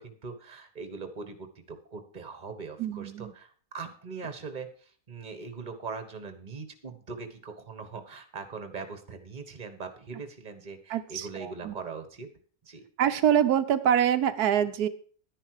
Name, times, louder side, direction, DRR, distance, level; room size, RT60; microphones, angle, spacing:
voice 1, 0.0-12.3 12.6-12.8, right 4 dB, 30° right, 8 dB, 1.4 m, -41 dB
voice 2, 2.8-3.3 10.9-11.7 13.0-14.9, right 9 dB, 90° right, 9 dB, 1.3 m, -25 dB
11.0 x 10.0 x 4.8 m, 0.43 s
omnidirectional pair, 1.6 m